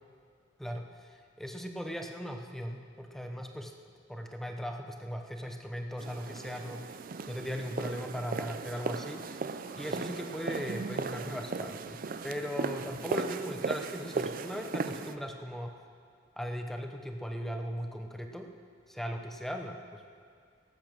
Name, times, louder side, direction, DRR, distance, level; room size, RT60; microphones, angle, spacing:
voice 1, 0.6-3.7 4.1-7.0 7.3-9.5 9.7-15.7 16.4-18.5 18.9-20.1, equal, ahead, 4 dB, 0.8 m, -38 dB
sound 1, 6.0-15.2, right 4 dB, 45° right, 0.5 m, -37 dB
17.5 x 8.6 x 6.1 m, 2.3 s
head